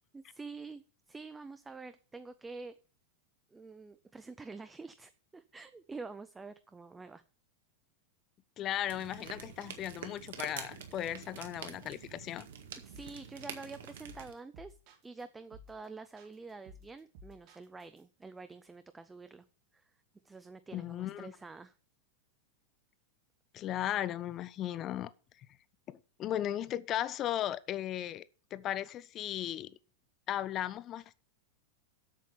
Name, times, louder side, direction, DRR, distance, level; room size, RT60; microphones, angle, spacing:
voice 1, 0.1-0.8 1.1-2.7 3.5-7.2 12.8-14.8 15.0-19.5 19.7-19.8 20.2-21.7, right 4 dB, 10° right, 0.6 m, -47 dB
voice 2, 8.6-12.5 20.7-21.4 23.5-25.1 25.9-28.3 28.5-29.8 30.3-31.0, left 12 dB, 30° left, 0.5 m, -36 dB
sound 1, 8.9-14.3, right 8 dB, 60° right, 1.7 m, -47 dB
sound 2, 12.9-13.2 13.5-15.2 15.5-15.9 16.2-18.0, equal, 45° right, 2.7 m, -55 dB
8.4 x 7.4 x 7.0 m
figure-of-eight pair, 90°, 0 cm